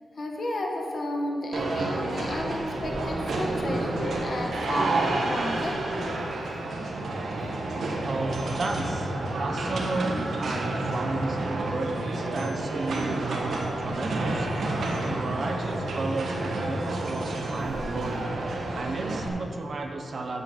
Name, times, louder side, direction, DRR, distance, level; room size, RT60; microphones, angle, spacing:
voice 1, 0.1-5.8 17.7-17.9, left 1 dB, 40° left, 0 dB, 1.3 m, -32 dB
sound 1, 1.5-19.3, right 2 dB, 70° right, 1.3 m, -30 dB
voice 2, 8.0-14.5 15.0-18.3 18.7-20.4, right 3 dB, 45° right, 4 dB, 0.8 m, -33 dB
7.8 x 7.0 x 7.5 m, 2.8 s
wide cardioid pair, 175°, 0 cm